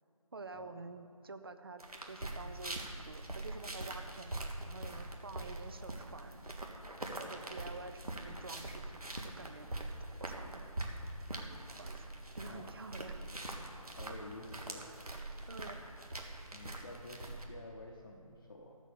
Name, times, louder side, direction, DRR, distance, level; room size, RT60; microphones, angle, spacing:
voice 1, 0.3-6.5 7.0-9.7 10.2-10.7 11.8-12.1 12.4-13.2 15.5-15.8, right 3 dB, 40° right, 10 dB, 0.6 m, -49 dB
sound 1, 1.8-17.4, right 1 dB, 80° right, 1.8 m, -43 dB
voice 2, 14.0-15.0 16.5-18.7, left 2 dB, 40° left, -1 dB, 0.9 m, -50 dB
13.0 x 7.2 x 7.0 m, 2.8 s
figure-of-eight pair, 160°, 19 cm